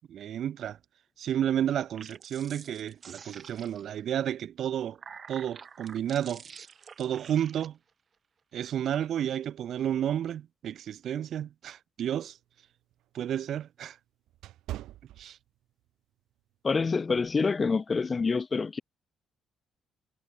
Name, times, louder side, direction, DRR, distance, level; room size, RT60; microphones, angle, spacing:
voice 1, 0.1-0.8 1.2-5.0 5.3-6.6 7.0-7.8 8.5-12.4 13.1-14.0 15.2-15.4, right 10 dB, 70° right, 0.3 m, -31 dB
sound 1, 1.9-4.0 4.7-7.7, right 6 dB, 45° right, 1.7 m, -48 dB
sound 2, 12.2-15.9 16.3-16.6 17.2-17.4, right 14 dB, 85° right, 2.7 m, -44 dB
voice 2, 16.6-18.8, left 4 dB, 35° left, 0.3 m, -27 dB
cardioid pair, 90°, 0 cm